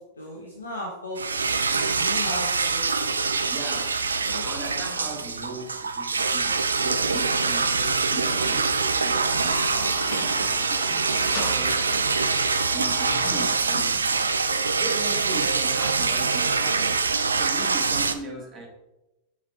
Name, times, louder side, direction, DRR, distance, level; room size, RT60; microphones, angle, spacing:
voice 1, 0.2-3.0 3.2-3.6 4.2-4.4 7.8-8.6 9.1-9.3 9.9-10.1, left 2 dB, 75° left, -2 dB, 1.3 m, -38 dB
sound 1, 1.2-18.1, right 4 dB, 75° right, 0.5 m, -24 dB
voice 2, 3.5-4.0 4.3-7.8 8.1-12.4 12.7-14.3 14.8-17.1 17.3-18.7, right 2 dB, 25° right, 0 dB, 2.1 m, -39 dB
sound 2, 9.2-13.5, left 4 dB, 35° left, 1.9 m, -38 dB
7.4 x 5.8 x 4.4 m, 0.99 s
figure-of-eight pair, 90°, 0 cm